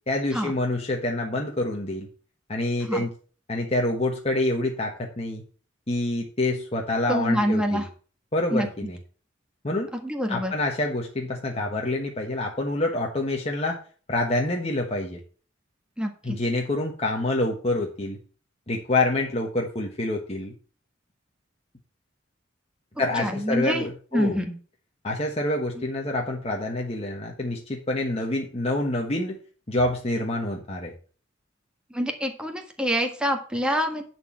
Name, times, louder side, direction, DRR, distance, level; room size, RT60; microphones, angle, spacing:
voice 1, 0.1-2.1 2.5-3.1 3.5-5.4 5.9-7.8 8.3-9.0 9.6-9.9 10.3-13.8 14.1-15.2 16.2-18.2 18.7-20.5 23.0-24.4 25.0-29.4 29.7-30.9, left 2 dB, 30° left, 0 dB, 1.3 m, -27 dB
voice 2, 7.1-7.9 8.5-8.7 9.9-10.5 16.0-16.4 23.1-23.8 24.1-24.6 25.8-25.9 31.9-34.0, equal, 5° right, 4 dB, 1.6 m, -26 dB
10.5 x 4.6 x 7.2 m, 0.40 s
head